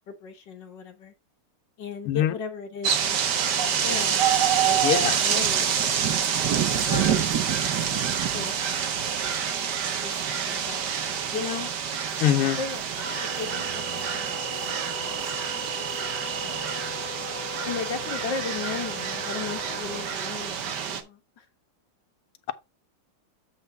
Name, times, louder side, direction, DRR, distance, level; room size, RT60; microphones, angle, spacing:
voice 1, 0.1-1.1 1.8-4.3 4.6-8.6 10.0-11.7 12.6-15.2 16.4-16.9 17.6-21.5, left 5 dB, 60° left, 1.8 m, -37 dB
sound 1, 2.8-21.0, right 8 dB, 60° right, 1.5 m, -27 dB
voice 2, 4.8-5.2 12.2-12.6, left 11 dB, 80° left, 1.8 m, -23 dB
sound 2, 13.0-20.1, left 7 dB, 40° left, 0.8 m, -41 dB
7.8 x 3.6 x 5.4 m
omnidirectional pair, 2.4 m